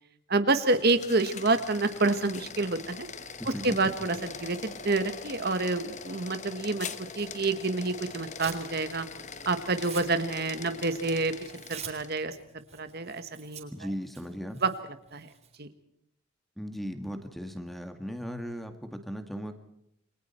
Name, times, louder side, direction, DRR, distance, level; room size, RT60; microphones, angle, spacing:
voice 1, 0.3-3.1 3.6-6.9 7.1-9.1 9.4-11.3 11.7-12.3 12.7-13.7 14.6-14.7 15.1-15.3 15.6-15.7, right 3 dB, 50° right, 10 dB, 1.4 m, -28 dB
sound 1, 0.5-12.3, left 5 dB, 35° left, 1.1 m, -42 dB
voice 2, 3.4-3.8 13.7-14.6 16.6-19.5, equal, ahead, 7 dB, 1.9 m, -37 dB
Tearing, 7.1-8.7 9.0-15.6, right 8 dB, 30° right, 3.8 m, -47 dB
29.0 x 22.5 x 4.5 m, 0.77 s
head